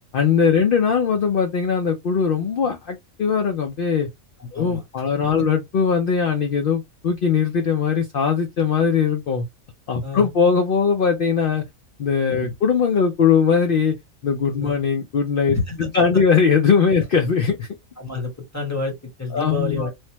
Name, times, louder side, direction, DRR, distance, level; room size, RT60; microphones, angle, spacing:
voice 1, 0.1-4.1 4.5-9.5 9.9-11.6 12.0-13.9 14.2-17.7 19.3-19.9, left 6 dB, 60° left, 0.6 m, -20 dB
voice 2, 4.4-4.8 5.4-5.5 10.0-10.3 12.4-12.5 14.6-14.8 15.5-16.2 18.0-19.9, left 3 dB, 15° left, 0.9 m, -29 dB
3.2 x 2.1 x 2.8 m
omnidirectional pair, 1.4 m